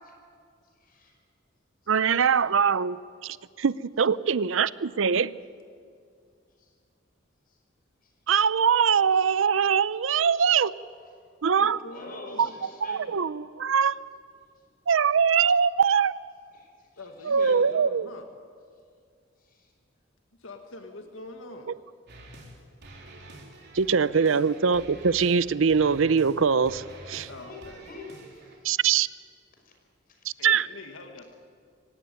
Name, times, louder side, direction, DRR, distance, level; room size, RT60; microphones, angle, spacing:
voice 1, 0.8-1.2 6.6-6.7 7.5-7.6 8.0-8.1 11.9-13.1 16.5-17.6 19.4-19.7 27.4-28.6 29.6-29.7 30.1-30.2, left 2 dB, 45° left, 2 dB, 5.6 m, -46 dB
voice 2, 1.9-5.4 8.3-10.7 11.4-11.8 12.4-12.5 12.8-14.0 14.9-16.1 17.3-18.1 23.7-27.3 28.6-29.1 30.4-30.7, right 6 dB, 75° right, 17 dB, 0.6 m, -23 dB
voice 3, 11.6-12.5 17.0-18.3 20.4-21.7 23.9-24.5 27.3-27.8 30.4-31.3, left 2 dB, 80° left, 4 dB, 1.9 m, -43 dB
sound 1, 22.1-22.5 22.8-25.4 25.7-26.4 26.6-28.6, right 1 dB, 60° right, 3.9 m, -47 dB
24.0 x 18.0 x 9.2 m, 2.2 s
head